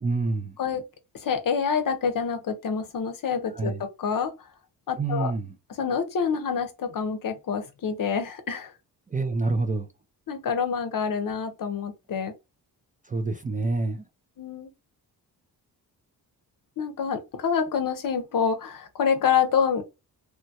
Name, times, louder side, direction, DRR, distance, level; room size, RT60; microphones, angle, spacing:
voice 1, 0.0-0.6 3.5-3.8 5.0-5.5 9.1-9.9 13.0-14.0, right 3 dB, 20° right, 0.3 m, -27 dB
voice 2, 1.2-4.3 4.9-5.3 5.8-8.7 10.3-12.3 14.4-14.7 16.8-19.8, left 6 dB, 55° left, 0.7 m, -27 dB
3.1 x 2.2 x 2.7 m
cardioid pair, 95°, 41 cm